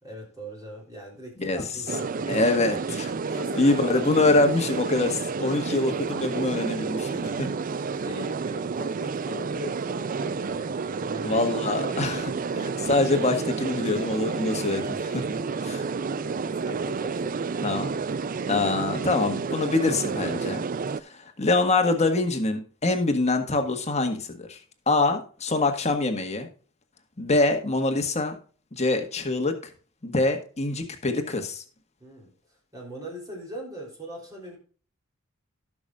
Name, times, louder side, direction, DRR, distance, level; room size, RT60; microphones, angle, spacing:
voice 1, 0.0-4.2 5.6-5.8 7.0-11.5 11.7-12.2 15.4-17.5 32.0-32.3 32.7-34.6, equal, 20° right, -2 dB, 3.4 m, -41 dB
sound 1, 1.9-21.0, right 5 dB, 40° right, 0.4 m, -30 dB
voice 2, 2.3-3.1 3.6-7.5 7.8-7.9 11.2-15.3 15.6-15.8 17.6-18.0 18.5-20.6 21.0-21.1 21.4-24.6 24.9-26.5 27.2-28.4 28.7-29.5 30.0-31.6, left 2 dB, 35° left, 6 dB, 1.6 m, -25 dB
18.0 x 6.2 x 2.4 m, 0.40 s
head